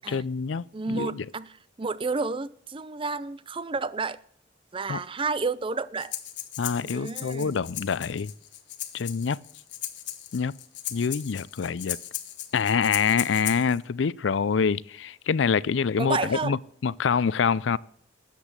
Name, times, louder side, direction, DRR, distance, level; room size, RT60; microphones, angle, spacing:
voice 1, 0.1-1.2 4.9-5.0 6.6-8.3 8.9-9.4 10.3-10.5 10.9-12.0 12.5-17.8, left 6 dB, 85° left, 0.5 m, -26 dB
voice 2, 0.7-4.2 4.7-6.1 6.8-7.6 16.0-16.6, right 4 dB, 30° right, 0.5 m, -31 dB
Breathing, 6.0-13.8, left 13 dB, 70° left, 1.3 m, -37 dB
13.0 x 8.4 x 7.4 m
head